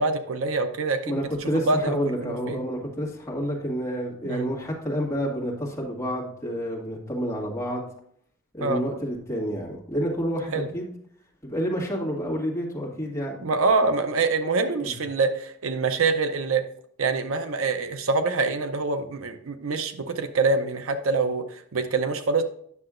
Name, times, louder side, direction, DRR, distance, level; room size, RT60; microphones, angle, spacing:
voice 1, 0.0-1.2 1.5-1.9 2.2-2.6 4.2-4.5 8.6-8.8 10.5-10.7 13.4-16.6 17.0-22.4, right 3 dB, 75° right, 8 dB, 0.6 m, -25 dB
voice 2, 1.1-7.9 8.5-10.9 11.4-13.4 14.8-14.9, equal, 15° left, -5 dB, 1.8 m, -29 dB
9.6 x 6.6 x 2.5 m, 0.64 s
head